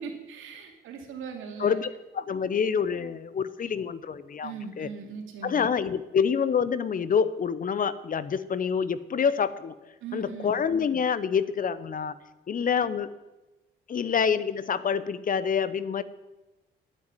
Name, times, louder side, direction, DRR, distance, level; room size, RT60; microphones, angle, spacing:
voice 1, 0.0-1.8 4.4-5.6 10.0-10.5, right 5 dB, 85° right, 4 dB, 2.5 m, -39 dB
voice 2, 2.1-4.9 5.4-9.7 10.1-12.1 12.5-13.2 13.9-16.0, left 6 dB, 45° left, 16 dB, 0.8 m, -27 dB
9.4 x 9.0 x 9.8 m, 1.1 s
cardioid pair, 90°, 20 cm